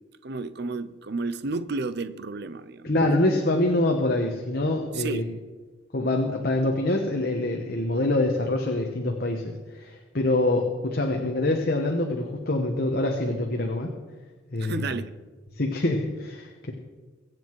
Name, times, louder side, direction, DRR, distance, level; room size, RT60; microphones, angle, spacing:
voice 1, 0.2-3.1 4.9-5.2 14.6-15.1, right 3 dB, 50° right, 0.6 m, -32 dB
voice 2, 2.8-5.2 5.9-13.9 14.5-14.9 15.5-16.7, left 2 dB, 50° left, 1.3 m, -25 dB
23.5 x 7.9 x 4.7 m
head